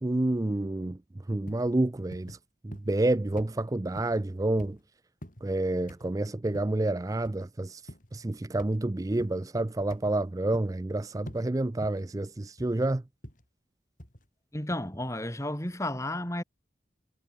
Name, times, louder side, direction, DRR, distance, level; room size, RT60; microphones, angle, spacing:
voice 1, 0.0-1.0 1.3-2.4 2.6-4.8 5.4-13.0, right 2 dB, 20° right, 0.4 m, -29 dB
sound 1, 1.5-1.7 2.1-2.4 2.7-3.1 3.4-3.6 4.0-4.2 4.6-4.8 5.2-5.5 5.9-6.1 6.5-6.8 7.2-7.5 7.9-8.1 8.6-8.8 9.2-9.4 9.9-10.2 10.5-10.8 11.3-11.5 11.8-12.1 12.6-12.8 13.2-13.5 14.0-14.3 14.7-14.8, equal, 50° left, 6.1 m, -46 dB
voice 2, 14.5-16.4, left 1 dB, 15° left, 3.9 m, -32 dB
head